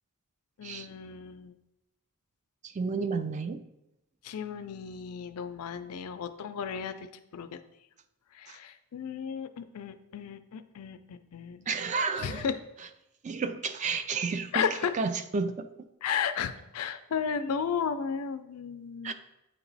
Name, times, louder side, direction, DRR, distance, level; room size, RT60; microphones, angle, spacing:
voice 1, 0.6-1.5 4.2-7.1 7.3-7.6 8.3-11.7 12.2-12.5 14.5-14.9 16.0-19.1, left 7 dB, 85° left, 11 dB, 0.4 m, -34 dB
voice 2, 2.6-3.6 8.5-8.6 11.7-12.5 13.2-14.7 14.9-15.7 19.0-19.1, right 4 dB, 35° right, 10 dB, 0.3 m, -31 dB
8.4 x 3.0 x 4.0 m, 0.90 s
head